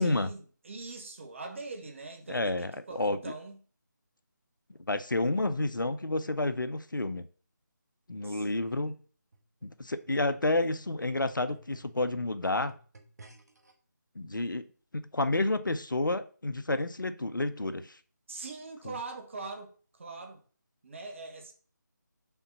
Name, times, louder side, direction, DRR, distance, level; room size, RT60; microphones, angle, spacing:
voice 1, 0.0-3.6 8.2-9.0 18.3-20.4 20.8-21.5, right 3 dB, 40° right, 1.4 m, -42 dB
voice 2, 2.3-3.2 4.9-7.2 8.1-9.0 9.6-12.8 14.1-14.6 14.9-18.0 18.8-18.9, left 2 dB, 80° left, 0.8 m, -30 dB
sound 1, 9.3-13.7 14.5-14.6, right 2 dB, 55° right, 1.4 m, -55 dB
5.7 x 4.1 x 5.9 m
figure-of-eight pair, 160°, 10 cm